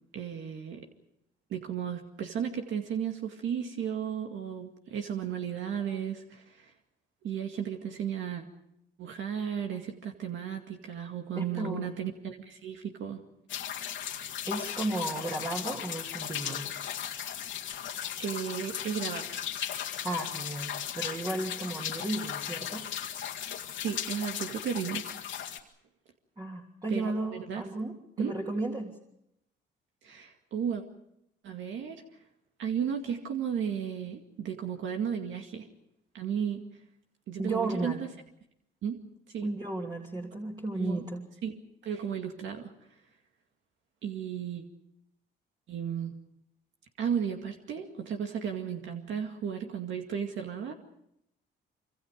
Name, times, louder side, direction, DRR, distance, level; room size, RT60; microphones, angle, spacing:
voice 1, 0.1-0.9 1.5-6.7 7.2-8.4 9.0-13.2 18.2-19.2 23.8-25.0 26.9-27.7 28.2-28.3 30.0-30.8 31.4-32.0 32.6-35.7 36.1-36.6 37.3-38.1 38.8-39.0 39.3-39.5 40.8-41.0 41.4-41.5 41.8-43.0 44.0-44.6 45.7-46.2 47.0-50.7, right 8 dB, 75° right, 3 dB, 2.2 m, -34 dB
voice 2, 11.4-11.9 14.5-16.7 20.0-22.8 26.4-28.9 37.4-38.0 39.4-41.2, right 2 dB, 20° right, -1 dB, 3.1 m, -34 dB
sound 1, 13.5-25.6, left 10 dB, 75° left, 2.1 m, -36 dB
26.0 x 25.5 x 5.2 m, 0.79 s
cardioid pair, 90°, 20 cm